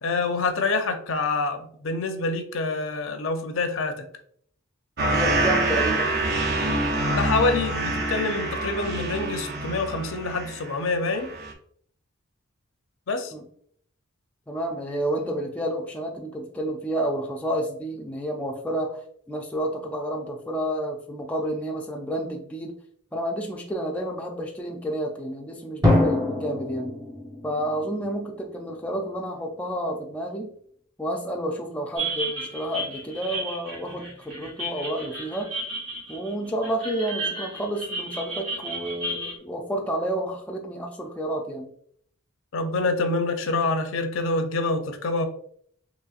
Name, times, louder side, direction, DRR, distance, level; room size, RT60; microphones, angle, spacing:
voice 1, 0.0-3.9 7.1-11.3 13.1-13.3 42.5-45.3, left 3 dB, 70° left, 6 dB, 0.6 m, -26 dB
sound 1, 5.0-10.8 11.1-11.5, right 2 dB, 50° right, 0.6 m, -26 dB
voice 2, 5.1-6.1 13.3-13.4 14.5-19.0 19.3-22.8 23.1-26.9 27.4-30.5 31.0-35.5 36.1-41.7, right 1 dB, 5° left, 0 dB, 0.4 m, -30 dB
Drum, 25.8-28.6, left 1 dB, 20° right, 0.8 m, -24 dB
sound 2, 32.0-39.4, right 2 dB, 80° right, 1.5 m, -33 dB
4.0 x 3.1 x 2.4 m, 0.63 s
head